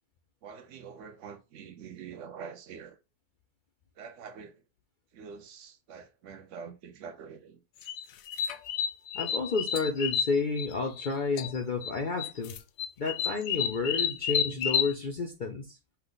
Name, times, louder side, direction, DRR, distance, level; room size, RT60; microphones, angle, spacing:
voice 1, 0.4-3.0 4.0-4.6 5.1-7.6, right 6 dB, 65° right, 0.9 m, -45 dB
sound 1, 7.8-11.1 11.4-11.9 12.2-14.9, left 8 dB, 75° left, 1.0 m, -30 dB
voice 2, 9.1-12.5 13.0-15.8, left 4 dB, 60° left, 0.5 m, -31 dB
5.7 x 2.2 x 3.9 m
omnidirectional pair, 1.5 m